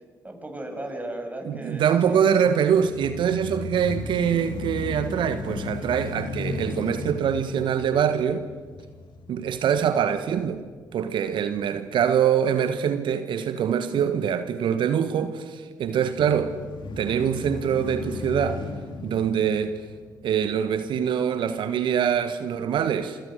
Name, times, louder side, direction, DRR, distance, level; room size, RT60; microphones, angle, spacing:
voice 1, 0.2-2.2 3.5-3.6, right 1 dB, 15° right, 7.0 m, -36 dB
voice 2, 1.4-8.5 9.3-10.6 10.9-16.5 17.0-18.6 19.0-19.8 20.2-23.2, right 8 dB, 60° right, 1.4 m, -24 dB
sound 1, 2.8-10.9 11.4-11.5 16.0-20.5, left 4 dB, 55° left, 3.0 m, -36 dB
27.5 x 25.0 x 6.6 m
hypercardioid pair, 45°, 9 cm